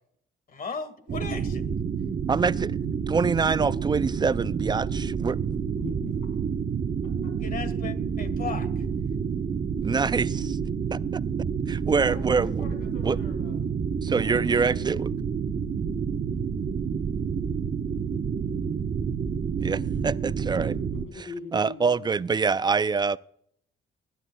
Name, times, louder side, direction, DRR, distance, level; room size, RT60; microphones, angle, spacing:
voice 1, 0.5-1.6 7.4-9.0, left 5 dB, 45° left, 1.7 m, -36 dB
sound 1, 1.1-21.1, right 6 dB, 45° right, 0.9 m, -29 dB
voice 2, 2.3-2.8 3.1-5.4 9.8-10.6 10.9-11.2 11.7-12.6 13.0-13.2 14.0-15.1 19.6-20.8 21.5-23.2, right 5 dB, 20° right, 0.3 m, -25 dB
voice 3, 5.8-6.2 7.0-7.3 12.0-13.6 14.0-14.6 21.0-22.1, left 4 dB, 85° left, 3.8 m, -42 dB
20.0 x 10.5 x 2.3 m
cardioid pair, 90°, 20 cm